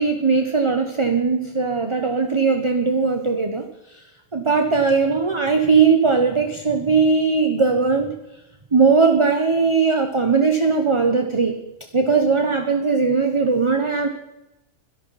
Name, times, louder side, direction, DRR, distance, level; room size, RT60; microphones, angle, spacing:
voice 1, 0.0-3.7 4.3-8.1 8.7-11.5 11.9-14.1, right 4 dB, 25° right, 6 dB, 1.0 m, -19 dB
26.5 x 11.5 x 4.2 m, 0.95 s
omnidirectional pair, 1.4 m